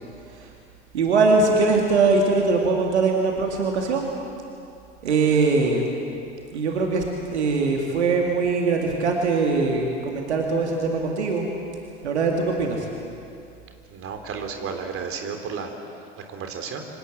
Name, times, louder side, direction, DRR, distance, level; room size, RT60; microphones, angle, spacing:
voice 1, 0.9-4.1 5.0-5.9 6.5-11.5 12.0-12.9, right 4 dB, 70° right, 1 dB, 2.4 m, -22 dB
voice 2, 13.9-15.7 16.3-16.9, right 6 dB, 40° right, 4 dB, 3.5 m, -32 dB
26.0 x 19.0 x 7.8 m, 2.6 s
figure-of-eight pair, 70°, 34 cm